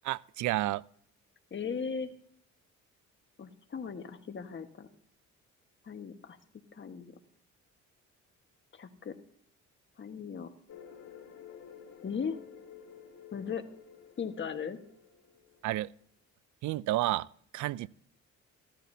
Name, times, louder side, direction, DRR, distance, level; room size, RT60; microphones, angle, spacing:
voice 1, 0.0-0.8 15.6-15.9 16.6-17.3 17.5-17.9, right 16 dB, 75° right, 0.4 m, -30 dB
voice 2, 1.5-2.1 3.4-4.9 5.8-6.4 6.7-7.1 8.7-9.1 10.0-10.5 12.0-12.4 13.3-13.6 14.2-14.8, left 6 dB, 40° left, 1.4 m, -37 dB
sound 1, 10.7-15.9, left 8 dB, 70° left, 2.5 m, -52 dB
15.0 x 13.5 x 2.7 m
cardioid pair, 90°, 30 cm